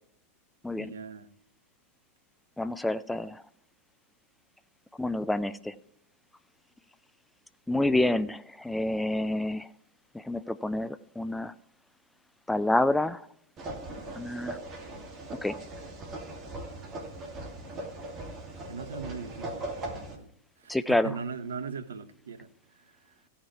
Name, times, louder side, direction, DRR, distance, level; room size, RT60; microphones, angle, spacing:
voice 1, 0.7-1.3 18.7-20.3 20.6-22.5, right 5 dB, 70° right, 0.8 m, -39 dB
voice 2, 2.6-3.4 5.0-5.7 7.7-9.7 10.1-11.5 12.5-13.2 14.2-14.6 15.4-15.6 20.7-21.2, left 1 dB, 5° left, 0.4 m, -28 dB
sound 1, 13.6-20.2, right 2 dB, 30° right, 2.5 m, -39 dB
16.0 x 5.8 x 4.5 m
figure-of-eight pair, 95°, 0 cm